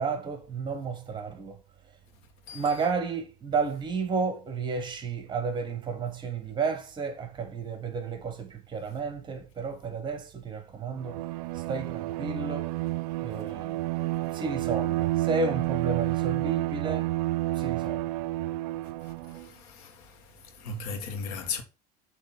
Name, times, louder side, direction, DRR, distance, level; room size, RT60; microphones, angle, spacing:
voice 1, 0.0-2.0 2.5-11.3 11.5-12.7 13.2-13.9 14.3-17.1 17.5-18.1, right 4 dB, 25° right, 1.3 m, -32 dB
Bowed string instrument, 11.0-19.5, right 17 dB, 90° right, 0.4 m, -30 dB
voice 2, 19.4-19.9 20.6-21.6, left 4 dB, 85° left, 1.7 m, -35 dB
7.3 x 3.2 x 6.0 m
supercardioid pair, 140°, 19 cm